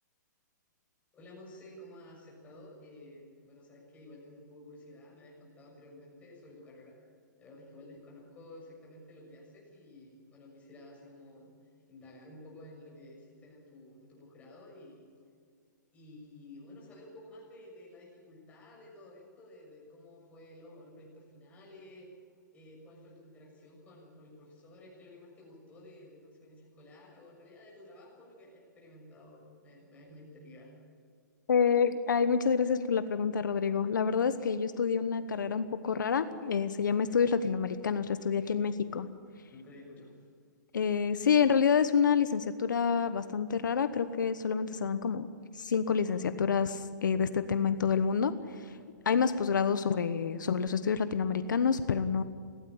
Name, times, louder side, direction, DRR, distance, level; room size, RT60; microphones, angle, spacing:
voice 1, 1.1-7.0 7.4-11.6 11.9-15.1 15.9-22.1 22.5-30.7 39.5-40.1, left 1 dB, 15° left, -3 dB, 6.9 m, -52 dB
voice 2, 31.5-39.1 40.7-45.3 45.5-48.8 49.0-52.2, left 6 dB, 85° left, 11 dB, 1.1 m, -28 dB
17.5 x 17.0 x 9.9 m, 2.1 s
hypercardioid pair, 155°, 10 cm